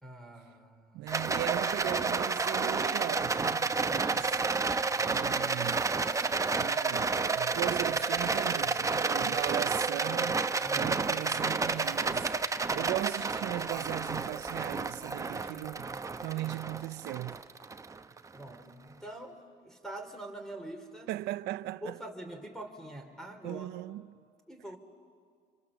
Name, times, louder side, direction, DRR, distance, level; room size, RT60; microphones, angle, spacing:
voice 1, 0.0-1.2 3.9-4.1 9.2-9.4 10.6-11.0 15.3-16.3 18.3-19.4 19.6-21.1 21.8-23.7 24.5-24.8, right 1 dB, 5° left, 3.0 m, -45 dB
voice 2, 0.9-4.3 5.0-5.9 6.6-10.5 10.7-17.4 21.1-22.0 23.4-24.2, right 16 dB, 80° right, 0.6 m, -38 dB
Rattle, 1.1-18.4, right 4 dB, 20° right, 0.8 m, -30 dB
26.5 x 26.0 x 7.2 m
cardioid pair, 110°, 17 cm